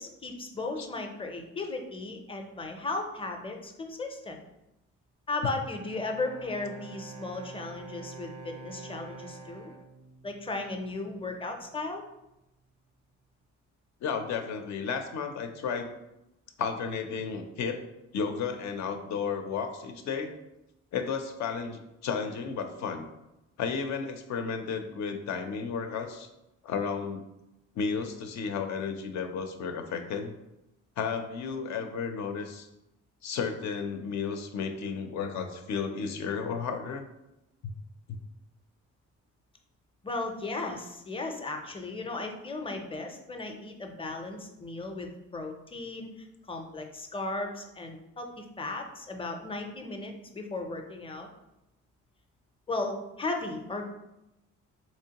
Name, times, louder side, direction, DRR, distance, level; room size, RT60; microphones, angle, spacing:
voice 1, 0.0-4.4 5.3-9.7 10.2-12.0 40.0-51.3 52.7-53.9, left 2 dB, 20° left, 4 dB, 0.5 m, -36 dB
Bowed string instrument, 5.5-10.9, right 3 dB, 70° right, 0.5 m, -47 dB
voice 2, 14.0-15.9 16.6-17.8 18.1-20.3 20.9-23.1 23.6-26.3 26.6-27.2 27.8-30.3 31.0-32.7 33.2-37.0, left 6 dB, 70° left, 5 dB, 0.5 m, -33 dB
3.7 x 3.0 x 2.8 m, 0.92 s
cardioid pair, 90°, 30 cm